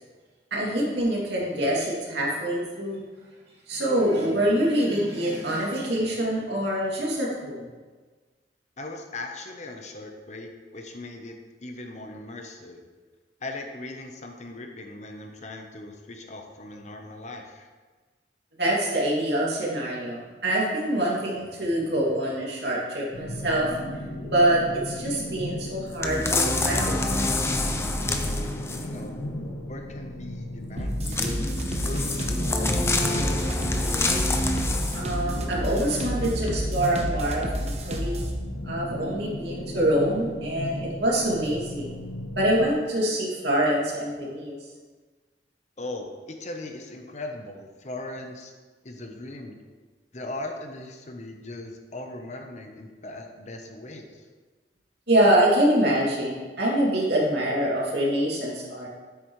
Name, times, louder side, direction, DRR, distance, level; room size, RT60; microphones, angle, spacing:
voice 1, 0.5-3.0 3.7-7.7 18.6-23.7 24.2-27.4 34.9-38.3 38.6-42.0 42.3-44.6 55.1-58.9, right 1 dB, 70° right, -4 dB, 2.5 m, -25 dB
voice 2, 8.8-12.8 13.4-17.7 28.8-29.3 29.7-31.3 31.8-33.3 45.8-48.5 48.8-49.6 50.1-54.2, left 2 dB, 40° left, 3 dB, 0.9 m, -39 dB
sound 1, 23.1-42.7, left 1 dB, 70° left, 0.8 m, -36 dB
sound 2, 26.0-29.0 31.0-35.2 35.8-35.9, left 2 dB, 15° left, 0.6 m, -27 dB
sound 3, 30.8-38.4, equal, 35° right, 1.0 m, -30 dB
9.9 x 8.3 x 3.2 m, 1.4 s
head